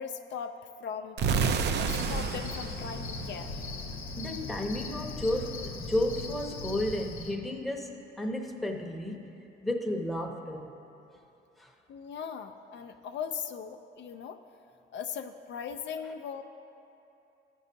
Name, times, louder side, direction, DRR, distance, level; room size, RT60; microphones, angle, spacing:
voice 1, 0.0-1.4 1.8-3.6 11.9-14.4 14.9-16.4, left 7 dB, 65° left, 6 dB, 0.4 m, -39 dB
sound 1, 1.2-4.0, right 5 dB, 60° right, 0.4 m, -30 dB
Cricket, 1.9-7.3, left 3 dB, 80° left, 0.8 m, -39 dB
voice 2, 4.2-9.3 9.6-10.7 11.6-11.7, left 1 dB, ahead, 1 dB, 0.7 m, -32 dB
13.5 x 5.4 x 2.7 m, 2.8 s
cardioid pair, 90°, 20 cm